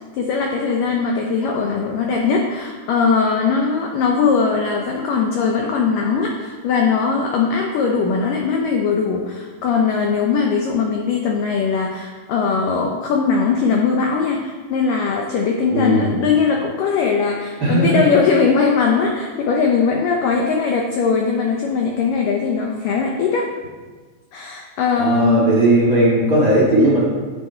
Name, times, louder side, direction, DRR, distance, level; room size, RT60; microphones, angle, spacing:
voice 1, 0.1-23.5 24.3-25.6, left 5 dB, 80° left, 1 dB, 1.9 m, -20 dB
voice 2, 15.7-16.1 17.6-18.1 25.0-27.0, right 1 dB, 45° right, -5 dB, 1.6 m, -16 dB
10.5 x 8.0 x 4.5 m, 1.4 s
omnidirectional pair, 4.8 m